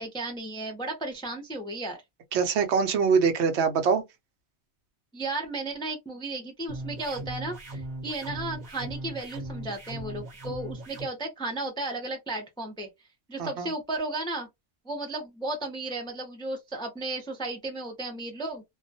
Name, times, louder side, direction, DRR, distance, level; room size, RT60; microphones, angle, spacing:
voice 1, 0.0-2.0 5.1-12.9 13.3-14.5 14.9-18.6, right 2 dB, 5° left, 0.4 m, -34 dB
voice 2, 2.3-4.0 13.4-13.7, right 5 dB, 75° right, 0.9 m, -24 dB
sound 1, 6.7-11.1, right 1 dB, 40° right, 0.8 m, -38 dB
2.2 x 2.2 x 2.6 m
omnidirectional pair, 1.2 m